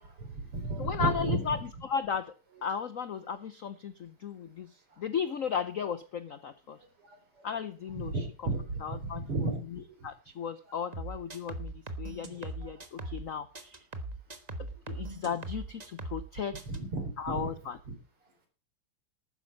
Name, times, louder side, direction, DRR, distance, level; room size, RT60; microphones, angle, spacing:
voice 1, 0.2-1.4 7.4-7.5 8.0-8.6 8.9-9.6 16.7-17.5, right 2 dB, 85° right, 4 dB, 4.9 m, -32 dB
voice 2, 0.8-2.3 2.6-6.8 7.4-8.5 8.8-11.7 12.0-13.8 14.9-16.6 17.2-17.8, left 7 dB, 75° left, 13 dB, 0.7 m, -35 dB
sound 1, 10.9-13.3 13.5-16.3 16.5-16.8, right 2 dB, 25° right, 1.1 m, -40 dB
12.5 x 9.8 x 5.2 m, 0.33 s
omnidirectional pair, 2.4 m